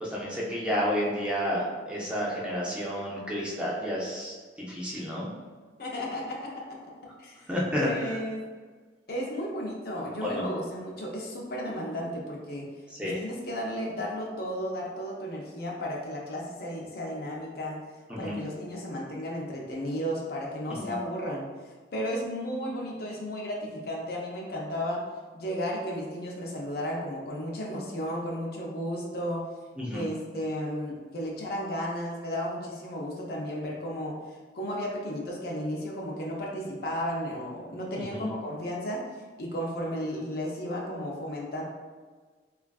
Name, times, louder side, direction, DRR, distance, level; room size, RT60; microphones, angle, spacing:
voice 1, 0.0-4.3 4.7-5.3 7.5-8.2 10.2-10.4 13.0-13.2 18.1-18.4 20.8-20.9 29.8-30.1 38.1-38.3, equal, 5° right, -6 dB, 0.4 m, -30 dB
voice 2, 5.8-6.5 6.8-6.9 7.2-7.5 7.8-8.5 9.1-12.7 13.0-17.8 18.2-21.5 21.9-25.0 25.3-29.5 29.9-34.1 34.5-39.0 39.4-41.6, equal, 55° left, -2 dB, 0.5 m, -34 dB
3.3 x 2.3 x 2.2 m, 1.5 s
head